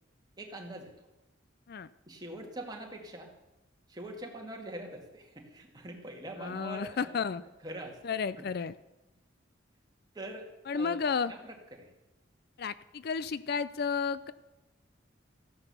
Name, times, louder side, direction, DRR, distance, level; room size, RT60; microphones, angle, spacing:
voice 1, 0.4-0.9 2.1-3.3 3.9-7.2 7.6-8.0 8.4-8.5 10.1-11.0 11.3-11.9, right 1 dB, 20° right, 1 dB, 2.1 m, -43 dB
voice 2, 6.4-7.4 8.0-8.7 10.7-11.3 12.6-14.3, left 5 dB, 50° left, 16 dB, 0.4 m, -32 dB
15.0 x 9.8 x 6.9 m, 0.99 s
head